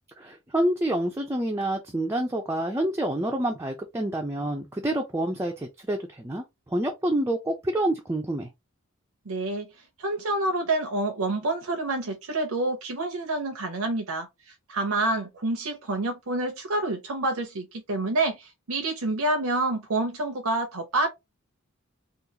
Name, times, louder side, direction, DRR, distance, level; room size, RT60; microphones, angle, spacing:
voice 1, 0.2-8.5, right 1 dB, 15° right, 0.4 m, -28 dB
voice 2, 9.3-9.7 10.0-21.1, right 2 dB, 75° right, 0.7 m, -28 dB
3.7 x 2.4 x 2.8 m
head